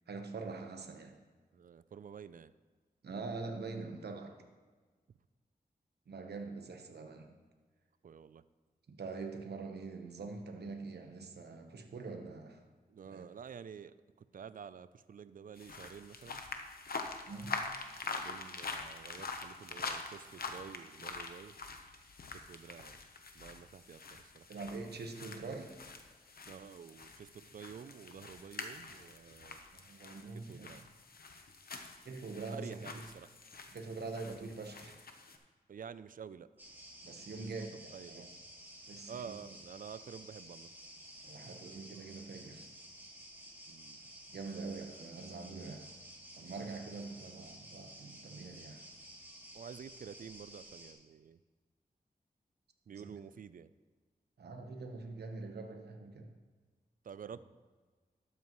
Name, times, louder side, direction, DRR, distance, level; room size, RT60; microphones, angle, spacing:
voice 1, 0.1-1.2 3.0-4.4 6.1-7.4 8.9-12.6 13.0-13.3 17.3-17.7 24.5-25.8 29.7-30.7 32.0-33.1 33.7-35.0 37.0-38.3 38.9-39.4 41.2-42.7 44.3-45.9 46.4-48.9 52.9-53.2 54.4-56.3, right 3 dB, 85° right, 5 dB, 1.1 m, -44 dB
voice 2, 1.5-2.5 8.0-8.4 12.9-16.4 18.1-21.6 22.3-23.0 23.3-24.5 26.5-29.6 30.5-30.9 32.5-33.3 35.7-36.5 37.3-38.3 39.1-40.7 43.7-44.0 49.5-51.4 52.9-53.7 57.0-57.5, right 7 dB, 55° right, 15 dB, 0.4 m, -50 dB
sound 1, 15.6-35.4, left 4 dB, 65° left, 0.9 m, -45 dB
sound 2, 36.6-50.9, right 1 dB, 10° right, 2.2 m, -53 dB
12.5 x 8.3 x 3.1 m, 1.4 s
cardioid pair, 65°, 17 cm